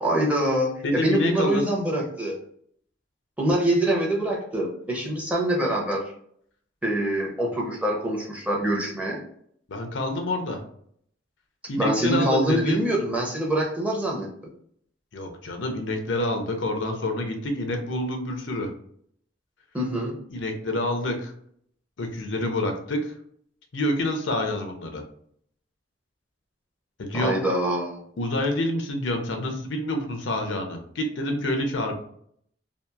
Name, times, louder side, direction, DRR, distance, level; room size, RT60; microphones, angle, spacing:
voice 1, 0.0-2.4 3.4-6.0 6.8-9.2 11.8-14.5 19.7-20.2 27.1-28.0, right 1 dB, 10° right, -1 dB, 0.6 m, -25 dB
voice 2, 0.8-1.7 9.7-10.6 11.7-12.9 15.1-18.7 20.3-21.3 22.0-23.1 23.7-25.0 27.0-27.4 28.2-31.9, left 1 dB, 85° left, 4 dB, 0.6 m, -27 dB
2.8 x 2.4 x 2.3 m, 0.65 s
head